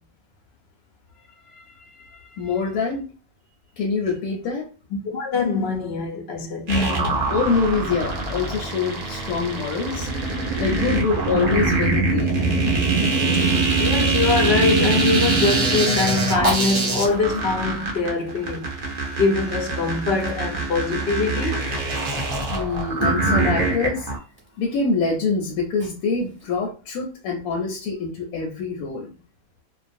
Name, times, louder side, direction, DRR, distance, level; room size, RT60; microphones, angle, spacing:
voice 1, 2.4-3.1 3.8-4.7 6.7-10.1 10.6-12.6 22.5-24.1 24.6-29.1, left 4 dB, 85° left, 1.0 m, -25 dB
voice 2, 5.1-6.7 13.0-21.7, left 3 dB, 65° left, 0.6 m, -23 dB
sound 1, 6.7-24.2, right 3 dB, 65° right, 0.4 m, -23 dB
Fire, 13.3-26.6, equal, 10° right, 0.8 m, -38 dB
2.4 x 2.1 x 2.5 m
omnidirectional pair, 1.5 m